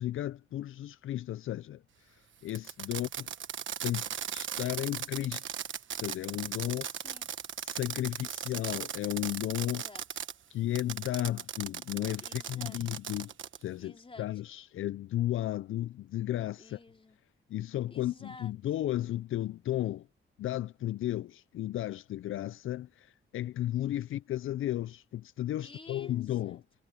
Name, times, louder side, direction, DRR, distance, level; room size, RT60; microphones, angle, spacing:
voice 1, 0.0-3.3 3.8-5.6 5.9-6.9 7.6-9.8 10.5-13.3 13.6-16.8 17.5-20.1 20.4-26.6, left 13 dB, 80° left, 0.4 m, -34 dB
Fireworks, 2.5-10.3 10.7-13.6, right 9 dB, 70° right, 1.2 m, -38 dB
voice 2, 6.6-7.6 8.1-8.5 9.6-10.2 12.2-12.8 13.8-14.3 16.6-17.2 17.9-18.5 25.6-26.6, left 3 dB, 25° left, 3.9 m, -52 dB
cardioid pair, 105°, 21 cm